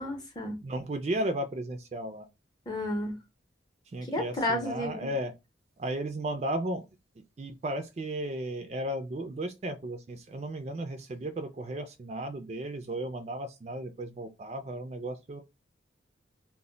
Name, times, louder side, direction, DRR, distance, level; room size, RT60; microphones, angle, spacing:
voice 1, 0.0-0.6 2.7-3.1 4.1-5.1, left 1 dB, 20° left, 0.6 m, -31 dB
voice 2, 0.6-2.3 3.9-5.3 5.8-6.9 7.4-15.4, right 1 dB, 35° right, 0.3 m, -34 dB
2.1 x 2.1 x 3.7 m
head